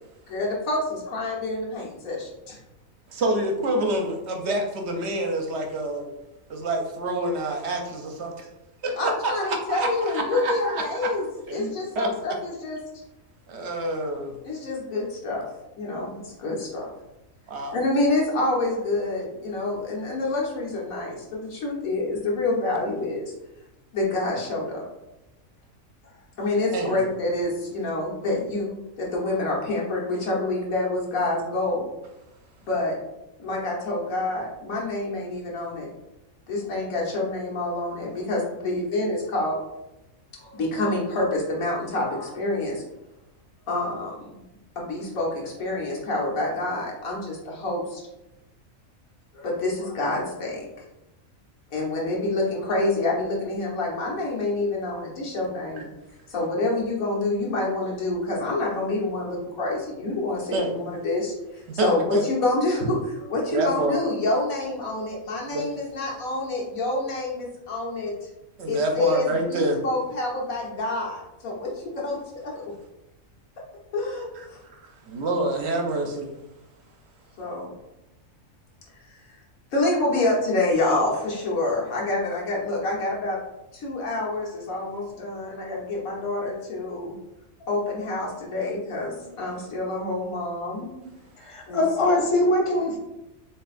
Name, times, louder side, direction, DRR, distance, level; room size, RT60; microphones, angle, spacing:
voice 1, 0.3-2.6 9.0-11.2 11.5-12.8 14.4-15.4 15.8-16.9 17.7-23.3 23.9-24.8 26.4-31.9 32.7-33.0 33.4-35.9 36.5-39.6 40.3-42.8 43.7-44.4 44.8-48.0 49.3-50.6 51.7-55.8 56.3-68.3 68.7-72.2 72.4-72.6 73.9-74.6 77.4-77.8 78.9-79.4 79.7-83.4 83.7-87.1 87.7-90.9 91.7-91.8, left 2 dB, 90° left, -3 dB, 1.7 m, -27 dB
voice 2, 3.1-6.1 6.5-8.5 8.8-11.1 11.5-12.1 13.5-14.3 17.5-17.8 26.7-27.0 55.8-55.9 60.5-60.7 61.7-62.3 63.5-64.0 65.5-65.7 68.6-69.9 74.3-76.3, right 1 dB, 60° right, 3 dB, 0.8 m, -27 dB
voice 3, 91.4-93.0, left 1 dB, 30° left, 1 dB, 0.7 m, -22 dB
7.0 x 3.0 x 2.5 m, 0.95 s
omnidirectional pair, 1.4 m